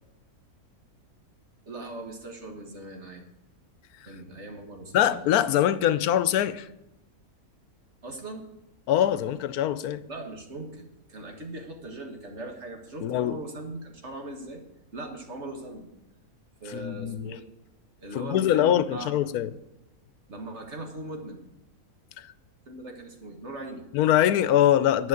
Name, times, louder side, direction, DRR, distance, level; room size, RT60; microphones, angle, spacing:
voice 1, 1.7-3.3 4.1-5.3 8.0-8.4 10.1-14.6 14.9-15.9 16.6-17.5 18.0-19.4 20.3-21.4 22.7-23.8, right 2 dB, 50° right, 1.8 m, -40 dB
voice 2, 4.9-6.7 8.9-10.0 13.0-13.4 16.7-17.3 18.1-19.5 22.2-22.3 23.9-25.1, left 11 dB, 85° left, 1.1 m, -23 dB
11.0 x 6.2 x 7.8 m
omnidirectional pair, 1.5 m